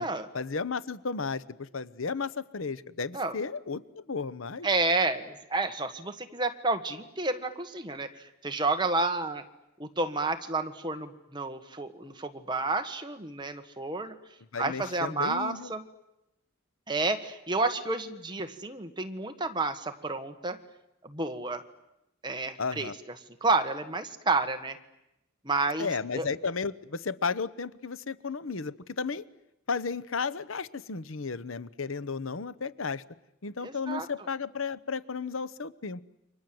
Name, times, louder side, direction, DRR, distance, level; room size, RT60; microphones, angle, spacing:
voice 1, 0.3-4.7 14.5-15.7 22.6-22.9 25.8-29.2 29.7-33.0 33.4-36.0, left 5 dB, 80° left, 16 dB, 0.9 m, -33 dB
voice 2, 4.6-9.4 9.8-14.2 14.6-15.8 16.9-20.6 21.0-21.6 22.2-22.9 23.4-24.8 25.4-26.3 33.6-34.1, right 3 dB, 20° right, 7 dB, 1.7 m, -30 dB
29.5 x 25.0 x 7.9 m, 0.90 s
head